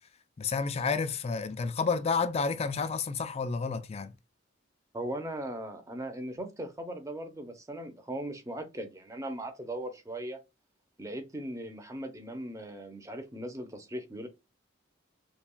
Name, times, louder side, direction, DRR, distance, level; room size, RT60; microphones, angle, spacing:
voice 1, 0.4-4.1, left 5 dB, 30° left, 0.4 m, -30 dB
voice 2, 4.9-10.4 11.0-14.3, right 1 dB, 15° right, 0.7 m, -38 dB
5.7 x 2.3 x 2.2 m
head